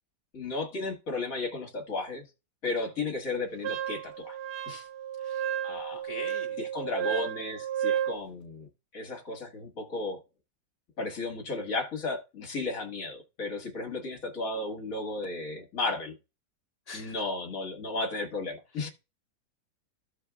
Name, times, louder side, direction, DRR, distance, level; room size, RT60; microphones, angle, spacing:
voice 1, 0.3-2.3 2.6-4.4 4.7-4.9 5.6-6.0 6.6-10.2 11.0-16.2 16.9-18.9, left 3 dB, 55° left, 2.1 m, -34 dB
Wind instrument woodwind instrument, 3.6-8.2, right 10 dB, 80° right, 1.3 m, -32 dB
voice 2, 5.2-5.5 6.0-6.6 16.9-17.2 18.8-18.9, left 3 dB, 25° left, 1.5 m, -43 dB
14.5 x 4.8 x 2.3 m
omnidirectional pair, 1.8 m